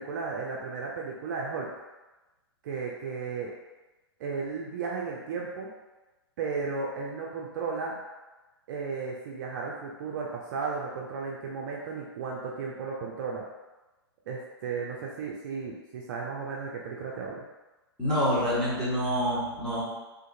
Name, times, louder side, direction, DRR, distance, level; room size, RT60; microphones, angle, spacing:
voice 1, 0.0-1.7 2.6-3.5 4.2-5.7 6.4-8.0 8.7-13.4 14.3-17.4, right 4 dB, 45° right, -2 dB, 0.4 m, -34 dB
voice 2, 18.0-19.8, equal, 5° left, -11 dB, 1.3 m, -27 dB
2.5 x 2.5 x 2.6 m, 1.1 s
figure-of-eight pair, 115°, 13 cm